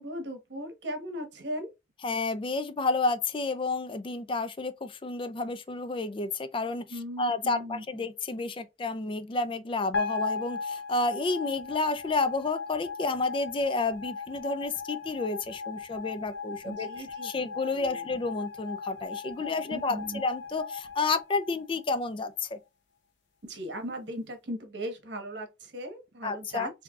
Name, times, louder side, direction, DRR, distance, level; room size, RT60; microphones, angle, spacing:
voice 1, 0.0-1.7 6.9-7.8 16.6-18.1 19.7-20.2 23.4-26.8, equal, 80° right, 1.2 m, -38 dB
voice 2, 2.0-6.9 7.2-16.9 17.2-22.6 26.2-26.7, left 3 dB, 30° left, 0.4 m, -30 dB
sound 1, 9.9-22.2, left 5 dB, 80° left, 0.8 m, -37 dB
4.5 x 2.8 x 2.4 m
head